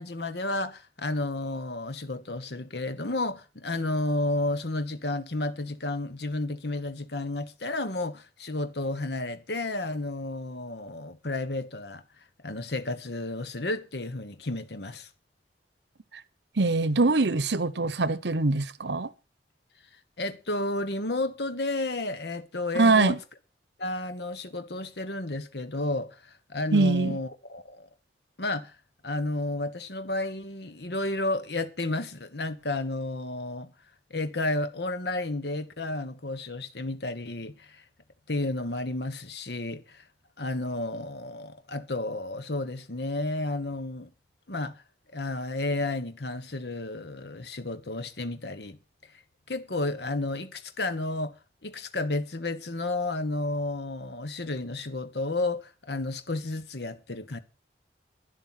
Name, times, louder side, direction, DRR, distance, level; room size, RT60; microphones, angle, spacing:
voice 1, 0.0-12.0 12.4-15.1 20.2-23.2 23.8-27.9 28.4-28.8 29.0-33.7 34.1-37.8 38.3-40.0 40.4-44.1 44.5-44.8 45.1-48.8 49.5-51.3 51.6-57.4, left 2 dB, 65° left, 1.3 m, -32 dB
voice 2, 16.6-19.1 22.7-23.2 26.7-27.2, right 3 dB, 70° right, 0.9 m, -23 dB
11.5 x 11.0 x 5.9 m
head